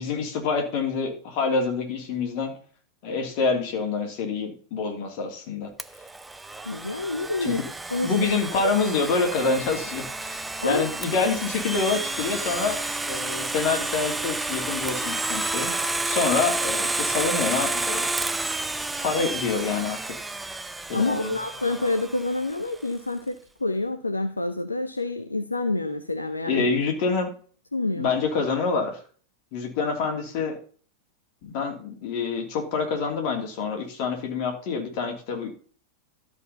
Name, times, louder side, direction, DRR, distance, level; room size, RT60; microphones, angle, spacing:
voice 1, 0.0-2.5 3.0-5.7 7.4-7.6 8.0-12.8 13.1-18.1 19.0-20.0 20.9-21.3 26.5-27.3 28.0-29.0 29.5-30.6 31.4-35.5, left 4 dB, 45° left, 2 dB, 2.9 m, -26 dB
Domestic sounds home sounds, 5.8-22.6, right 2 dB, 10° right, 0.5 m, -30 dB
voice 2, 6.6-7.6 7.9-8.1 8.6-8.7 10.6-10.8 20.9-26.7 27.7-28.1, left 2 dB, 80° left, 8 dB, 0.7 m, -27 dB
12.5 x 4.9 x 5.5 m, 0.42 s
figure-of-eight pair, 90°, 0 cm